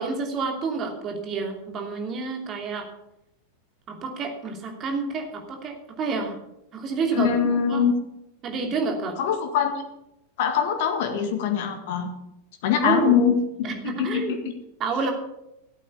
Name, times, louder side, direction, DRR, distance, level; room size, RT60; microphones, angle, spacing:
voice 1, 0.0-2.9 3.9-6.3 6.7-7.8 8.4-9.2 12.8-13.1 13.6-14.4 14.8-15.1, right 4 dB, 30° right, 2 dB, 2.9 m, -29 dB
voice 2, 7.1-7.9 9.2-9.7 10.4-12.1 12.6-14.4, left 8 dB, 50° left, 6 dB, 1.8 m, -23 dB
14.5 x 8.4 x 6.9 m, 0.86 s
figure-of-eight pair, 90°, 0 cm